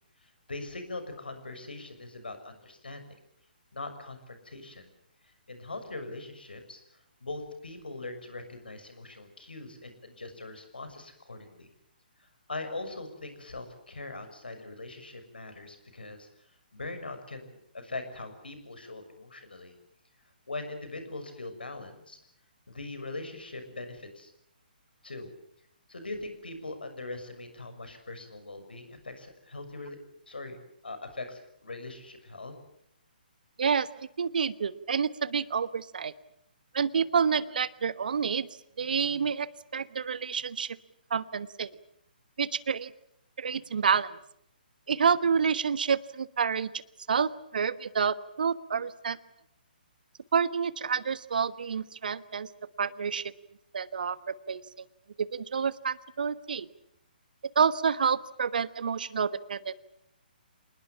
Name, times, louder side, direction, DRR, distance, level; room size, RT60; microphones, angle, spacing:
voice 1, 0.2-3.2 3.7-4.9 5.5-6.8 7.2-11.7 12.2-16.3 16.7-19.7 20.5-22.2 22.7-24.3 25.0-25.3 25.9-30.0 30.3-30.6 30.8-32.5, left 2 dB, 80° left, 8 dB, 6.4 m, -41 dB
voice 2, 33.6-36.1 36.7-38.5 38.8-40.8 41.1-41.7 42.4-42.9 43.4-44.2 44.9-46.8 47.1-49.2 50.3-52.5 52.8-53.3 53.7-54.6 55.2-56.7 57.5-59.7, right 6 dB, 60° right, 15 dB, 1.3 m, -28 dB
27.5 x 20.5 x 8.8 m, 0.76 s
figure-of-eight pair, 135°, 5 cm